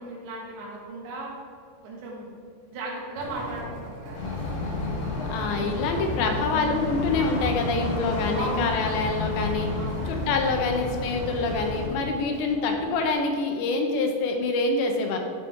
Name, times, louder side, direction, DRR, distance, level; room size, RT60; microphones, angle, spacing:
voice 1, 0.0-1.3 1.8-2.3 2.7-3.9 8.3-8.8 9.8-10.2, right 2 dB, 85° right, -4 dB, 3.8 m, -35 dB
sound 1, 3.1-13.1, right 1 dB, 60° right, 2.6 m, -45 dB
sound 2, 4.1-11.9, left 2 dB, 65° left, 2.9 m, -30 dB
voice 2, 5.3-9.7 10.1-15.2, left 3 dB, 85° left, 3 dB, 3.0 m, -26 dB
12.5 x 4.1 x 3.6 m, 2.1 s
omnidirectional pair, 5.0 m